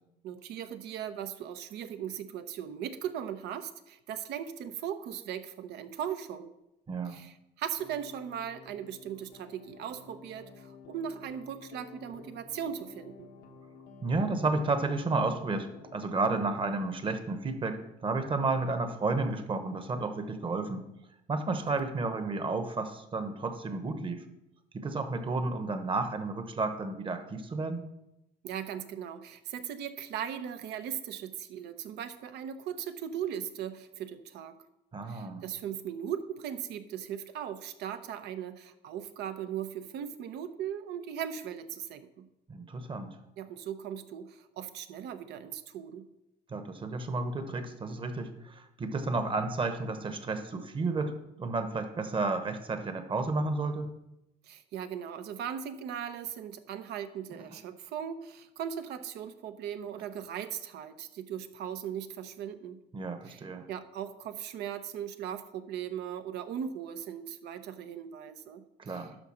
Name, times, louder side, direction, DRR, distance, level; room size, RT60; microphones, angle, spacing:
voice 1, 0.2-6.5 7.1-13.3 28.4-34.6 35.1-42.3 43.4-46.1 54.4-62.8 63.3-63.4 63.7-69.1, right 9 dB, 80° right, 10 dB, 0.8 m, -38 dB
voice 2, 6.9-7.2 14.0-20.8 21.3-24.2 24.7-27.8 34.9-35.4 42.5-43.2 46.5-53.9 62.9-63.7 68.8-69.2, right 3 dB, 30° right, 8 dB, 1.0 m, -32 dB
sound 1, 7.8-16.1, left 5 dB, 90° left, 1.1 m, -52 dB
11.5 x 3.8 x 6.4 m, 0.90 s
cardioid pair, 110°, 17 cm